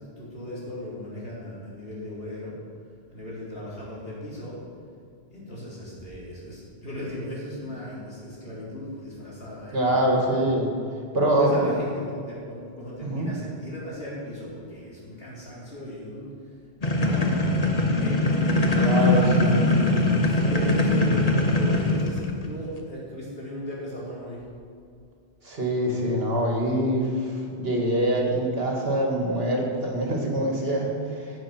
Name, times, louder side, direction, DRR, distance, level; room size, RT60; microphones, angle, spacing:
voice 1, 0.2-2.6 3.1-4.6 5.3-10.3 11.3-16.5 17.0-17.5 17.8-19.0 20.3-24.4, left 1 dB, 70° left, -7 dB, 4.4 m, -37 dB
voice 2, 9.7-10.7 11.1-11.7 13.0-13.3 18.8-19.7 25.4-31.3, right 1 dB, 65° right, -1 dB, 2.4 m, -24 dB
sound 1, 16.8-22.5, left 2 dB, 35° left, 1.2 m, -21 dB
15.5 x 7.8 x 6.0 m, 2.3 s
omnidirectional pair, 1.1 m